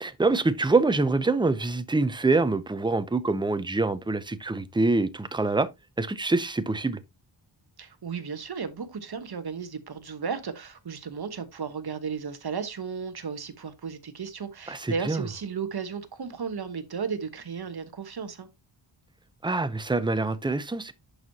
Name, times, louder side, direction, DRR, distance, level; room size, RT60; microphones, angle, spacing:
voice 1, 0.0-5.7 6.0-7.0 14.7-15.2 19.4-20.9, right 3 dB, 10° right, 0.5 m, -25 dB
voice 2, 7.8-18.5, right 6 dB, 50° right, 1.1 m, -34 dB
11.0 x 4.6 x 2.7 m
wide cardioid pair, 135°, 48 cm